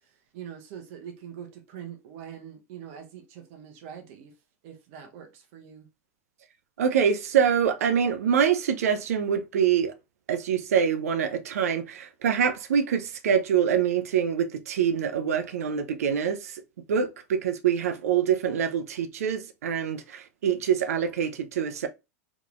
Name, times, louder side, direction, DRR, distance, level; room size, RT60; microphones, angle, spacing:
voice 1, 0.3-4.3 4.6-5.9, right 9 dB, 60° right, 0.9 m, -43 dB
voice 2, 6.8-9.9 10.3-16.6 16.9-21.9, right 8 dB, 85° right, 0.5 m, -25 dB
3.7 x 3.0 x 2.4 m
hypercardioid pair, 115°, 8 cm